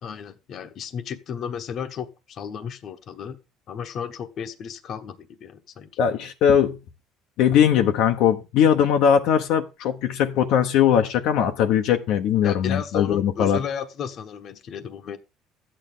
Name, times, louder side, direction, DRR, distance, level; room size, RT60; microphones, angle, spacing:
voice 1, 0.0-3.4 3.7-5.9 12.4-15.2, left 7 dB, 45° left, 1.1 m, -34 dB
voice 2, 6.0-6.8 7.4-13.6, left 8 dB, 70° left, 1.0 m, -20 dB
13.5 x 8.9 x 3.9 m
cardioid pair, 140°, 0 cm